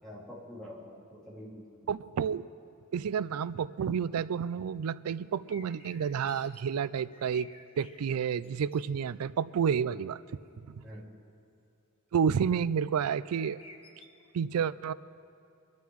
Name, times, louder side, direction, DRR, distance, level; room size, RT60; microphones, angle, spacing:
voice 1, 0.0-1.9 10.8-11.1 14.5-14.6, left 1 dB, 5° left, -7 dB, 3.1 m, -46 dB
voice 2, 1.9-2.5 2.9-7.5 7.8-10.2 12.1-13.6 14.3-14.9, right 7 dB, 85° right, 17 dB, 0.4 m, -30 dB
sound 1, 5.5-6.6 7.0-8.0 8.4-8.9 13.2-14.1, left 2 dB, 25° left, 1.1 m, -53 dB
25.0 x 13.0 x 3.1 m, 2.7 s
head